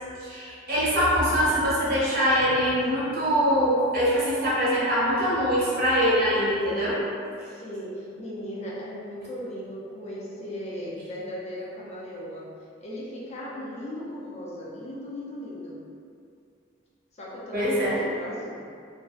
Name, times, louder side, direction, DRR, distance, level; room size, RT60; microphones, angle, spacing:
voice 1, 0.2-7.0 17.5-18.0, equal, 50° right, -8 dB, 0.7 m, -23 dB
voice 2, 7.4-12.4 12.8-15.8 17.1-18.7, equal, 35° left, -6 dB, 0.4 m, -37 dB
2.6 x 2.0 x 2.3 m, 2.4 s
head